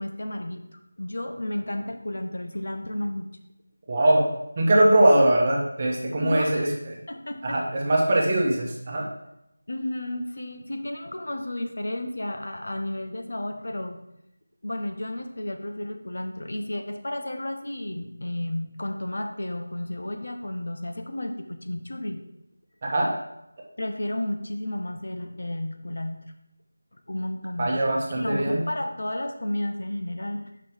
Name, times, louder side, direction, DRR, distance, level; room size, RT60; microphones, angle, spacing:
voice 1, 0.0-3.3 6.2-6.8 7.1-7.6 9.7-14.0 14.6-22.2 23.8-26.2 27.1-27.7 28.1-30.5, left 1 dB, 60° left, 5 dB, 0.7 m, -32 dB
voice 2, 3.9-4.3 4.6-7.0 7.4-9.1 22.8-23.1 27.6-28.7, right 1 dB, 30° right, -1 dB, 1.1 m, -21 dB
5.4 x 5.1 x 4.4 m, 0.85 s
figure-of-eight pair, 165°, 0 cm